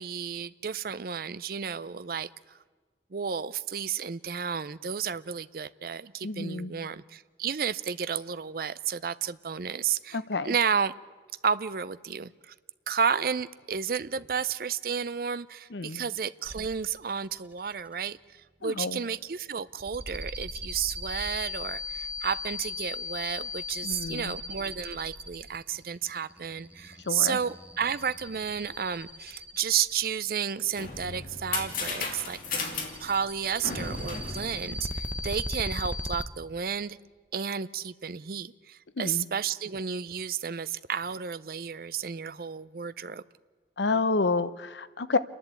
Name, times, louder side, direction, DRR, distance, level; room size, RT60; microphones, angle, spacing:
voice 1, 0.0-2.6 3.1-10.2 10.4-10.9 11.4-12.5 12.9-32.7 33.0-37.0 37.3-43.2, right 7 dB, 55° right, 16 dB, 0.5 m, -32 dB
voice 2, 6.2-6.7 10.1-10.5 15.7-16.0 18.6-19.0 23.8-24.3 27.1-27.4 39.0-39.2 43.8-45.2, left 3 dB, 80° left, 14 dB, 0.8 m, -29 dB
sound 1, 16.4-17.0 17.4-17.9 19.7-30.2 32.1-36.3, left 2 dB, 10° right, 0.8 m, -38 dB
sound 2, 30.4-35.5, left 4 dB, 50° left, 2.5 m, -36 dB
28.5 x 11.0 x 8.3 m, 1.4 s
head